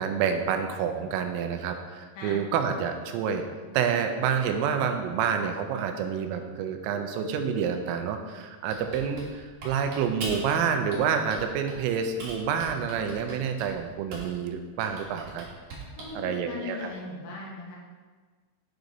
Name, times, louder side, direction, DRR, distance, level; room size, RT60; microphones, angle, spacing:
voice 1, 0.0-3.5 3.7-15.5 16.2-16.9, right 7 dB, 90° right, 6 dB, 3.2 m, -28 dB
Typing, 8.7-10.6 10.9-11.8 12.2-14.4 14.8-16.2, right 2 dB, 65° right, 1.8 m, -40 dB
voice 2, 16.0-17.8, left 3 dB, 80° left, -3 dB, 2.0 m, -38 dB
8.2 x 4.8 x 3.9 m, 1.4 s
omnidirectional pair, 5.7 m